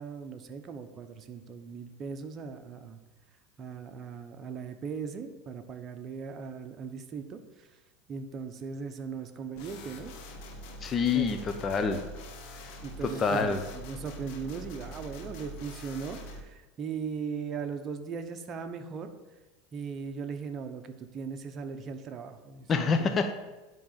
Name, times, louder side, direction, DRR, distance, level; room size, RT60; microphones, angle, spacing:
voice 1, 0.0-3.0 3.6-7.7 8.1-10.1 11.1-11.4 12.8-19.1 19.7-23.1, right 5 dB, 35° right, 6 dB, 1.0 m, -38 dB
sound 1, 9.6-16.4, equal, 65° left, 1.7 m, -44 dB
voice 2, 10.8-12.0 13.0-13.6 22.7-23.3, left 5 dB, 30° left, 6 dB, 0.9 m, -27 dB
10.5 x 3.9 x 7.5 m, 1.1 s
supercardioid pair, 105°, 0 cm